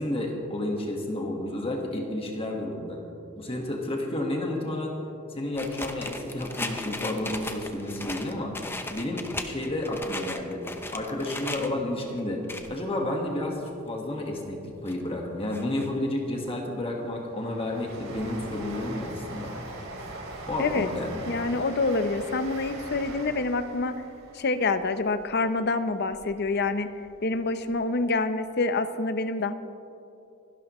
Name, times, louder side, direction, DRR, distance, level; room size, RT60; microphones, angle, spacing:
voice 1, 0.0-3.0 3.4-4.9 5.3-10.6 10.9-12.4 12.7-19.5 20.5-21.2, left 1 dB, 25° left, 0 dB, 1.6 m, -31 dB
sound 1, 5.5-11.7 12.2-12.8 13.2-13.3 13.7-13.8 14.5-15.0 15.5-15.9 16.5-16.6 16.8-16.9 17.1-17.2, left 2 dB, 10° left, 0.8 m, -37 dB
Train, 16.8-26.5 26.9-27.8 28.1-28.2, right 2 dB, 80° right, 2.8 m, -41 dB
voice 2, 21.3-24.0 24.3-26.9 27.2-29.5, left 3 dB, 50° left, 10 dB, 0.7 m, -27 dB
27.0 x 12.0 x 3.1 m, 2.7 s
head